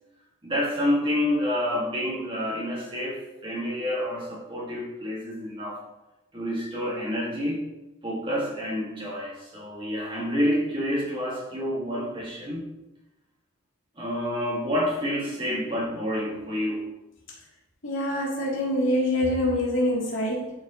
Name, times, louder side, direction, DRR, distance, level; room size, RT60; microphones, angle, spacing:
voice 1, 0.4-5.8 6.3-7.6 8.0-12.7 14.0-16.9, equal, 25° right, -4 dB, 1.6 m, -28 dB
voice 2, 17.8-20.5, left 1 dB, 70° left, -5 dB, 2.6 m, -25 dB
12.0 x 4.6 x 2.9 m, 0.98 s
head